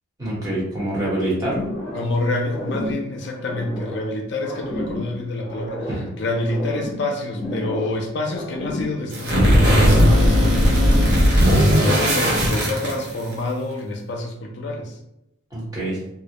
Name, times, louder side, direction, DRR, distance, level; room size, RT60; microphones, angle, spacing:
voice 1, 0.2-1.6 5.9-6.1 15.5-16.0, right 1 dB, 15° right, -7 dB, 0.9 m, -25 dB
sound 1, 1.4-2.2 2.4-4.1 4.4-6.1 6.4-8.0 8.3-9.8 10.2-10.8, left 1 dB, 35° left, 0.8 m, -32 dB
voice 2, 1.9-15.0, left 2 dB, 55° left, 1 dB, 0.3 m, -28 dB
sound 2, 9.1-13.3, equal, 50° right, 0.6 m, -16 dB
2.4 x 2.0 x 2.8 m, 0.85 s
head